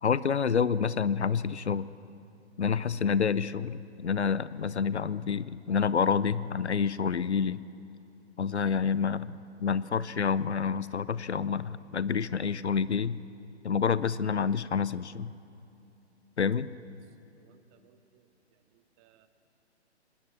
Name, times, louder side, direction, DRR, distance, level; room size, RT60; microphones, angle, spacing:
voice 1, 0.0-1.9 2.6-7.6 8.4-13.2 13.6-15.3 16.4-16.7, left 6 dB, 75° left, 17 dB, 0.8 m, -28 dB
voice 2, 17.4-18.3 18.7-19.3, right 11 dB, 20° right, 11 dB, 1.0 m, -64 dB
25.5 x 19.5 x 7.5 m, 2.7 s
figure-of-eight pair, 125°, 34 cm